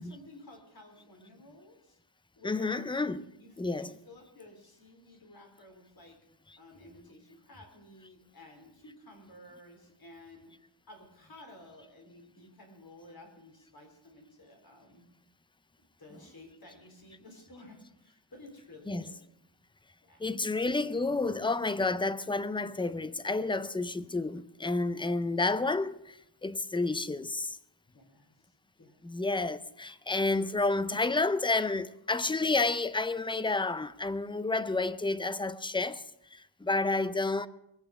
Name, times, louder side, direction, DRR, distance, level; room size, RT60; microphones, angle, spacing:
voice 1, 0.0-2.0 2.4-2.9 3.3-3.5 3.8-6.2 6.6-10.5 10.9-15.0 16.0-19.2 20.0-20.5 27.9-29.0, left 1 dB, 50° left, 4.0 m, -53 dB
voice 2, 2.4-3.2 3.6-4.0 16.1-16.2 18.8-19.2 20.2-27.6 29.0-36.0 36.3-37.5, left 3 dB, 10° left, 0.4 m, -30 dB
21.0 x 8.6 x 6.6 m
wide cardioid pair, 155°, 47 cm